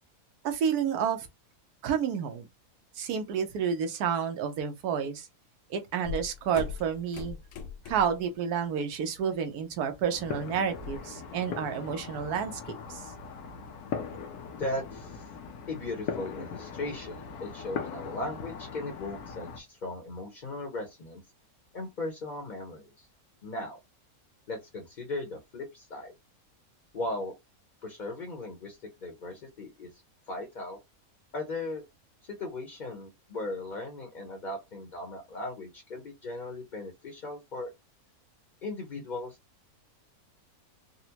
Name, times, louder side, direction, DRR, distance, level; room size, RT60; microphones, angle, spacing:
voice 1, 0.4-1.3 1.8-2.5 2.9-5.3 5.7-7.4 7.9-13.1, right 7 dB, 85° right, 1.2 m, -30 dB
sound 1, 6.0-8.3 8.6-9.0 9.3-11.0, left 6 dB, 65° left, 0.9 m, -40 dB
sound 2, 10.1-19.6, left 6 dB, 90° left, 1.2 m, -40 dB
voice 2, 14.6-15.2 15.7-21.2 21.7-23.1 23.4-23.8 24.5-26.1 26.9-27.3 27.8-29.9 30.3-30.8 31.3-31.8 32.2-37.7 38.6-39.4, left 2 dB, 40° left, 0.7 m, -37 dB
4.0 x 2.1 x 2.8 m
omnidirectional pair, 1.6 m